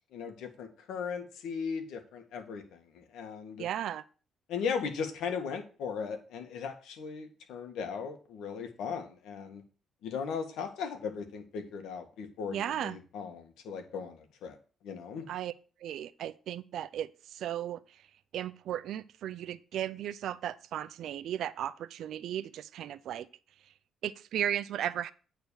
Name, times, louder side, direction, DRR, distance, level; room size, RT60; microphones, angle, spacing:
voice 1, 0.1-3.7 4.5-9.6 10.0-14.6 14.8-15.3, left 6 dB, 85° left, 1.7 m, -37 dB
voice 2, 3.6-4.0 12.5-13.0 15.3-15.5 15.8-17.8 18.3-23.3 24.0-25.1, right 11 dB, 75° right, 0.5 m, -35 dB
9.3 x 4.0 x 6.9 m
cardioid pair, 90°, 0 cm